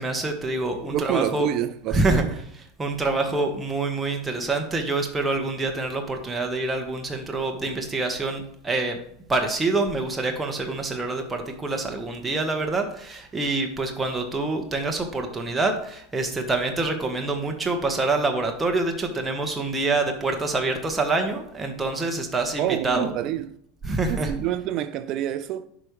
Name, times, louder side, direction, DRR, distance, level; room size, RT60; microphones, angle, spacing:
voice 1, 0.0-1.5 1.9-2.2 2.8-9.0 9.3-23.1 23.8-24.3, right 3 dB, 15° right, 1.2 m, -26 dB
voice 2, 0.9-2.2 22.6-23.5 24.1-25.7, right 11 dB, 50° right, 0.6 m, -27 dB
10.5 x 5.1 x 3.2 m
figure-of-eight pair, 80°, 0 cm